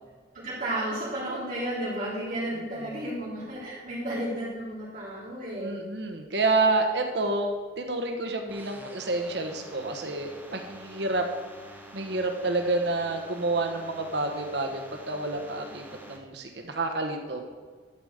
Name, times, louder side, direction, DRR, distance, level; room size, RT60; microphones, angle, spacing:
voice 1, 0.3-5.8, right 1 dB, 50° right, -9 dB, 3.9 m, -33 dB
voice 2, 5.6-11.2 11.9-17.4, right 2 dB, 65° right, 4 dB, 1.2 m, -29 dB
sound 1, 8.5-16.2, right 1 dB, 10° right, 1.3 m, -47 dB
12.0 x 5.1 x 8.0 m, 1.5 s
head